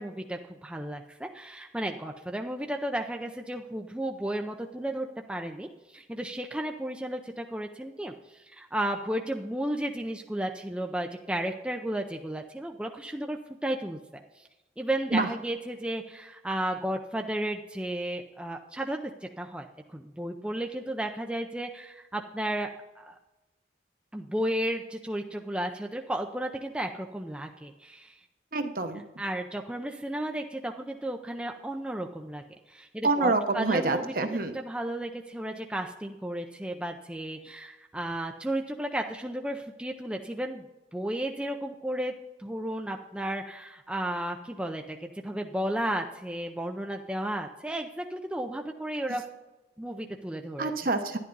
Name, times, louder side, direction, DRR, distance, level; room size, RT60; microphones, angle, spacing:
voice 1, 0.0-14.5 14.8-19.0 19.4-22.7 23.0-23.2 24.1-28.1 29.2-34.1 34.5-40.6 40.9-42.1 42.4-49.2 49.8-50.9, right 1 dB, 5° right, 3 dB, 0.5 m, -33 dB
voice 2, 28.5-29.0 33.0-34.5 50.6-51.2, right 3 dB, 50° right, 7 dB, 0.9 m, -26 dB
11.0 x 11.0 x 4.0 m, 1.1 s
head